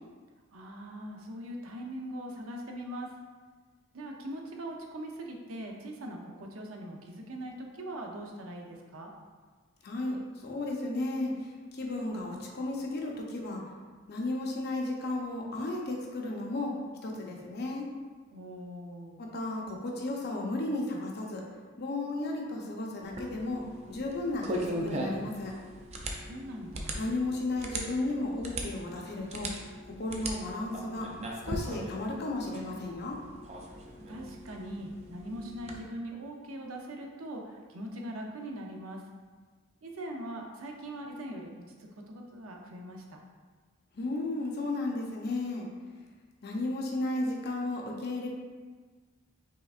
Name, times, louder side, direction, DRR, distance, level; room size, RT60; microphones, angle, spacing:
voice 1, 0.5-3.1 3.9-9.1 18.3-19.2 26.2-27.0 34.1-39.0 39.8-41.6 42.1-43.2, right 1 dB, 75° right, 1 dB, 0.7 m, -41 dB
voice 2, 9.8-13.6 14.1-16.7 17.0-17.9 19.2-21.4 21.8-25.5 27.0-29.5 30.0-31.1 31.4-33.2 43.9-45.7 46.4-48.3, left 2 dB, 50° left, -1 dB, 0.7 m, -34 dB
sound 1, 23.0-35.8, right 1 dB, 30° right, 0.5 m, -39 dB
5.6 x 3.5 x 2.5 m, 1.4 s
head